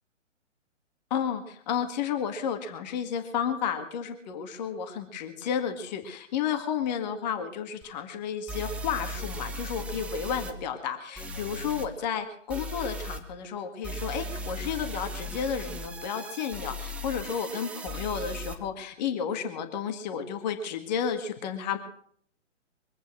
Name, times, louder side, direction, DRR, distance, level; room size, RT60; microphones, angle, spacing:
voice 1, 1.1-21.8, left 7 dB, 35° left, 7 dB, 1.9 m, -32 dB
sound 1, 7.8-7.9 8.5-10.5 11.2-11.9 12.5-13.2 13.8-18.5, equal, 5° right, 0.7 m, -37 dB
24.0 x 8.9 x 6.2 m, 0.63 s
figure-of-eight pair, 130°, 37 cm